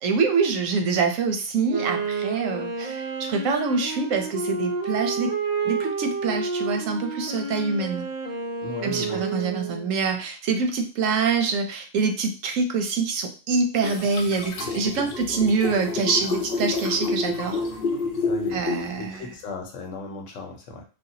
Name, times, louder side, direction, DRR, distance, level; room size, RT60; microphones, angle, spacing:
voice 1, 0.0-5.3 5.6-8.1 8.8-17.6 18.5-19.3, right 4 dB, 85° right, 4 dB, 1.0 m, -25 dB
Wind instrument woodwind instrument, 1.6-10.0, right 4 dB, 65° right, 0.4 m, -30 dB
voice 2, 8.6-9.2 15.6-15.7 18.2-20.8, left 3 dB, 75° left, 3 dB, 1.0 m, -36 dB
sound 1, 13.8-19.2, left 3 dB, 60° left, 0.7 m, -29 dB
3.4 x 2.2 x 2.7 m, 0.36 s
omnidirectional pair, 1.3 m